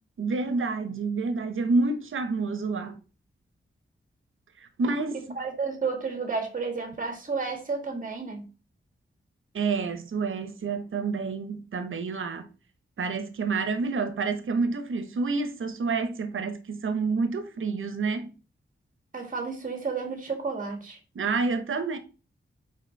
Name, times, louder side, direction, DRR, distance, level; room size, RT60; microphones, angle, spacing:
voice 1, 0.2-3.0 4.6-5.2 9.5-12.5 13.0-18.3 21.1-22.0, right 4 dB, 75° right, 0.8 m, -28 dB
voice 2, 5.4-8.5 19.1-21.0, right 4 dB, 40° right, 1.8 m, -31 dB
4.9 x 4.7 x 4.5 m
wide cardioid pair, 140°, 21 cm